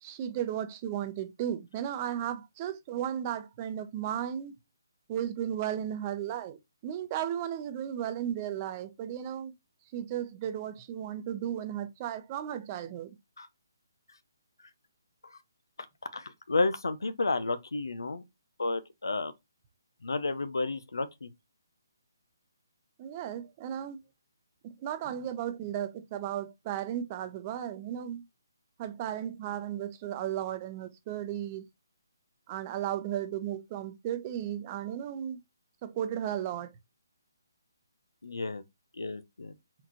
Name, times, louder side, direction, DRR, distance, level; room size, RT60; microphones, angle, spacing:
voice 1, 0.0-4.5 5.1-9.5 9.9-13.1 23.0-24.0 24.8-28.2 28.8-31.6 32.5-35.4 35.8-36.7, right 10 dB, 30° right, 0.8 m, -35 dB
voice 2, 16.1-18.2 18.6-19.3 20.0-21.3 38.2-38.6 39.0-39.5, left 3 dB, 80° left, 0.8 m, -31 dB
4.3 x 4.0 x 3.0 m
figure-of-eight pair, 150°, 2 cm